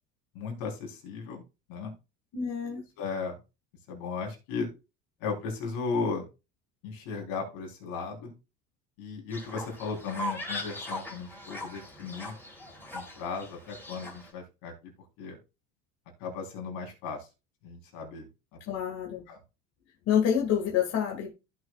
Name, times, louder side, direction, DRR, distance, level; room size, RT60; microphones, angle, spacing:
voice 1, 0.3-1.4 1.7-1.9 2.6-3.4 3.9-4.7 5.2-6.3 6.8-8.3 9.0-12.3 12.9-14.9 15.2-15.4 16.2-17.3 17.6-18.2 19.3-19.4, left 4 dB, 75° left, 2 dB, 4.0 m, -36 dB
voice 2, 2.3-2.8 18.7-19.3 20.1-21.3, left 8 dB, 55° left, 0 dB, 2.1 m, -27 dB
Fowl, 9.3-14.3, equal, 5° left, 3.3 m, -40 dB
15.5 x 6.5 x 2.4 m, 0.28 s
supercardioid pair, 120°, 31 cm